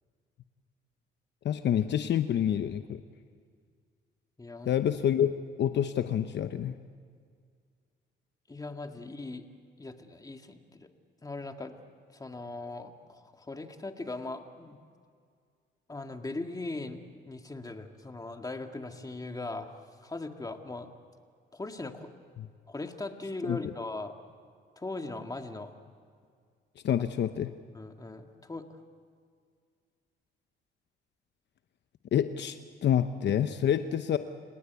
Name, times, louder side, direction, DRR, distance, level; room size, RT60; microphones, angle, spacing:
voice 1, 1.4-3.0 4.7-6.8 22.4-22.5 23.5-23.6 26.8-27.5 32.1-34.2, left 9 dB, 60° left, 9 dB, 0.9 m, -27 dB
voice 2, 4.4-4.7 8.5-9.4 9.8-10.9 11.2-11.7 12.1-14.8 15.9-17.0 17.3-20.9 21.5-22.1 22.7-24.1 24.8-25.7 27.7-28.8, left 2 dB, 20° left, 5 dB, 2.1 m, -39 dB
29.5 x 18.5 x 8.3 m, 2.1 s
cardioid pair, 90°, 20 cm